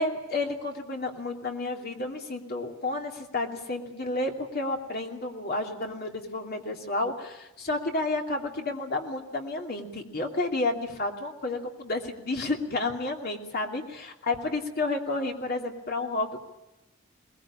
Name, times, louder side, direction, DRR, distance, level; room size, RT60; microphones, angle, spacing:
voice 1, 0.0-16.4, left 2 dB, 50° left, 2 dB, 2.9 m, -31 dB
22.0 x 21.0 x 8.7 m, 0.97 s
head